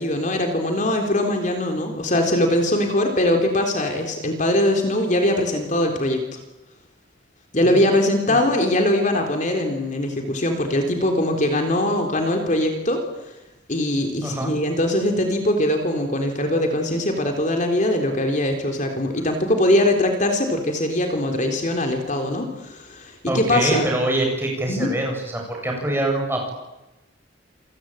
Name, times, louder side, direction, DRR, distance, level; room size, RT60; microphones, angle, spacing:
voice 1, 0.0-6.4 7.5-13.3 13.7-23.9 24.7-24.9, left 1 dB, 40° left, 4 dB, 3.6 m, -22 dB
voice 2, 7.6-8.0 8.3-8.4 14.2-14.5 23.3-26.5, right 1 dB, 10° right, 0 dB, 7.9 m, -24 dB
28.0 x 22.5 x 9.1 m, 0.99 s
head